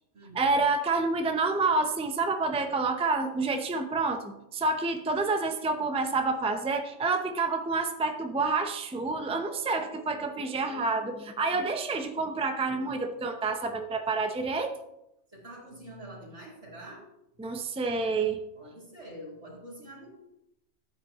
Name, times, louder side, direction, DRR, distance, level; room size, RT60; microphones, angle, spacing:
voice 1, 0.3-14.7 17.4-18.4, right 3 dB, 5° right, 6 dB, 0.6 m, -28 dB
voice 2, 15.3-17.1 18.5-20.1, right 1 dB, 85° right, -3 dB, 3.8 m, -45 dB
13.5 x 9.1 x 3.0 m, 0.86 s
omnidirectional pair, 1.2 m